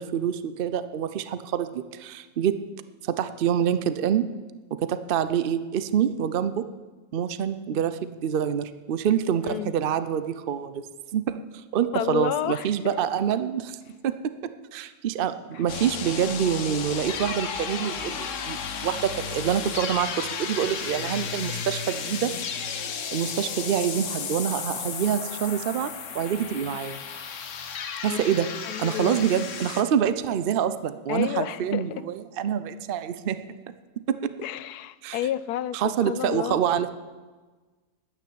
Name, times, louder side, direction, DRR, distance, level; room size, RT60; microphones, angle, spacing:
voice 1, 0.0-2.6 3.0-4.3 4.7-6.7 7.1-10.9 11.1-13.8 14.0-22.4 23.1-27.0 28.0-28.5 28.8-33.4 34.1-34.3 35.0-35.2 35.7-36.9, right 9 dB, 75° right, 12 dB, 0.5 m, -26 dB
voice 2, 11.9-12.9 28.1-28.2 28.6-29.2 31.1-31.8 34.4-35.8 36.1-36.6, left 12 dB, 75° left, 16 dB, 1.1 m, -30 dB
sound 1, 15.7-29.8, left 6 dB, 55° left, 1.2 m, -33 dB
12.0 x 9.5 x 8.5 m, 1.3 s
omnidirectional pair, 1.7 m